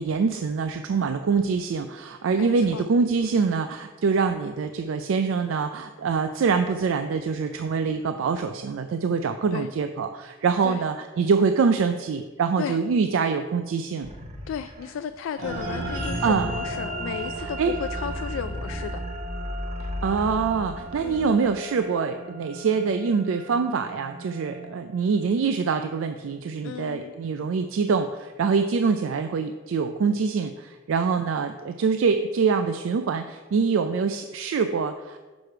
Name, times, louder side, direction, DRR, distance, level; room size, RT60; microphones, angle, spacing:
voice 1, 0.0-14.1 16.2-16.5 17.6-17.7 19.8-35.2, right 5 dB, 85° right, 7 dB, 0.4 m, -25 dB
voice 2, 2.3-2.9 9.5-9.7 10.6-10.8 12.6-12.8 14.5-19.0 21.0-21.4 26.6-27.1, left 7 dB, 85° left, 10 dB, 0.3 m, -34 dB
sound 1, 14.0-15.2 15.7-21.6, equal, 35° right, 0.8 m, -35 dB
sound 2, 15.4-26.0, right 1 dB, 65° right, 2.4 m, -37 dB
6.2 x 4.9 x 5.7 m, 1.3 s
head